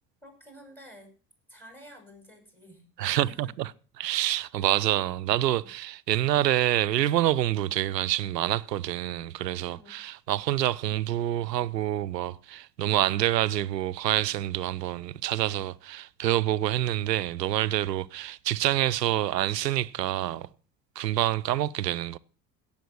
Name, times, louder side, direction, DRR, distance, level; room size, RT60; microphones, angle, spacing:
voice 1, 0.2-1.2 1.5-3.6 4.7-4.9 5.4-5.7 9.5-10.0, equal, 5° left, 6.3 m, -51 dB
voice 2, 3.0-3.7 4.0-20.5 21.0-22.2, right 13 dB, 85° right, 0.6 m, -27 dB
17.0 x 7.3 x 6.2 m
figure-of-eight pair, 60°, 49 cm